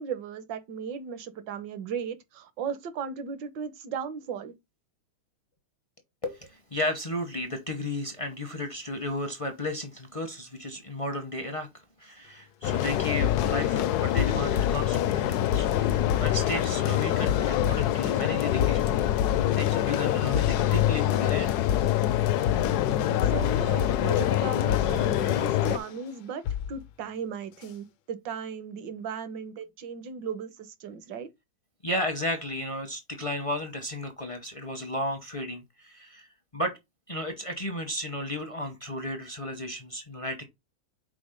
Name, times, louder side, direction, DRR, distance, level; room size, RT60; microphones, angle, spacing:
voice 1, 0.0-4.5 23.2-31.3, right 6 dB, 70° right, 1.5 m, -36 dB
voice 2, 6.2-11.7 12.0-18.9 19.5-21.6 31.8-36.3 36.5-36.7 37.1-40.4, left 1 dB, 40° left, 0.5 m, -34 dB
sound 1, 12.6-25.8, left 12 dB, 70° left, 0.9 m, -25 dB
sound 2, 12.8-26.0 26.4-26.8 27.6-27.7, left 9 dB, 85° left, 1.4 m, -32 dB
5.1 x 4.4 x 5.0 m
omnidirectional pair, 2.1 m